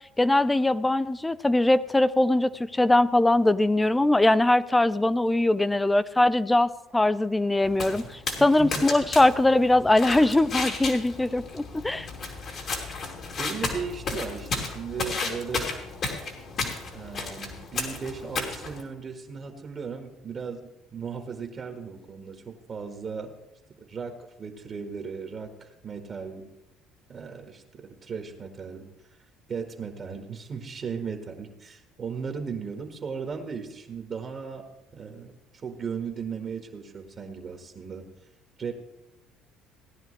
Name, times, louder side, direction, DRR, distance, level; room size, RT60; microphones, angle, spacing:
voice 1, 0.2-12.1, left 2 dB, 10° left, 15 dB, 0.5 m, -22 dB
sound 1, 7.6-18.8, left 4 dB, 55° left, 3.0 m, -33 dB
voice 2, 8.4-8.9 13.4-15.7 16.9-23.4 23.8-26.5 27.1-28.9 29.5-34.7 34.9-35.3 35.6-38.1 38.6-38.7, right 6 dB, 40° right, 5 dB, 1.6 m, -36 dB
18.0 x 10.5 x 3.3 m, 0.93 s
supercardioid pair, 70°, 0 cm